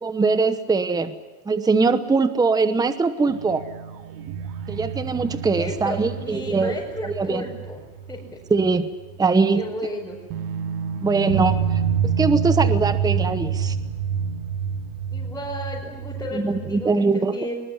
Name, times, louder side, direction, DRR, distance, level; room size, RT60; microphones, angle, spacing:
voice 1, 0.0-1.1 1.5-3.6 4.7-6.7 7.0-7.4 8.5-8.9 9.2-9.6 11.0-11.8 12.2-13.8 16.3-17.4, right 4 dB, 10° right, 11 dB, 1.0 m, -21 dB
sound 1, 3.3-8.7 9.0-9.1 10.3-16.9, right 7 dB, 55° right, 2.4 m, -27 dB
voice 2, 5.5-7.8 8.1-8.2 9.5-10.2 15.1-17.5, left 1 dB, 5° left, -6 dB, 5.1 m, -33 dB
21.5 x 21.5 x 9.9 m, 1.3 s
cardioid pair, 150°, 40 cm